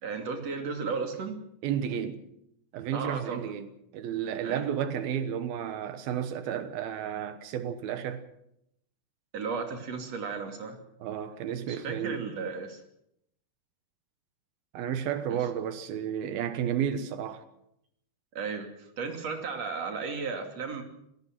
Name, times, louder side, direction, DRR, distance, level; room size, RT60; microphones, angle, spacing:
voice 1, 0.0-1.4 2.9-3.5 4.4-4.7 9.3-10.8 11.7-12.8 15.3-15.4 18.3-20.8, right 5 dB, 45° right, 3.6 m, -34 dB
voice 2, 1.6-2.2 2.7-8.2 11.0-12.3 14.7-17.5, right 9 dB, 80° right, 3.1 m, -32 dB
26.5 x 17.5 x 6.2 m
omnidirectional pair, 4.3 m